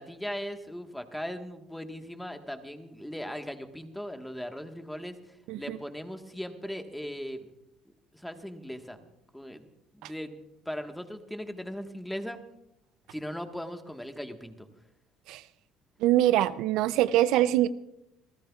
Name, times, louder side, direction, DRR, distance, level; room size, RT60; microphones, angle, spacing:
voice 1, 0.0-7.5 8.1-9.7 9.9-12.4 13.1-14.7, equal, 5° left, 6 dB, 1.4 m, -39 dB
voice 2, 16.0-17.7, right 14 dB, 75° right, 15 dB, 0.4 m, -24 dB
27.5 x 15.0 x 2.4 m, 0.86 s
cardioid pair, 115°, 0 cm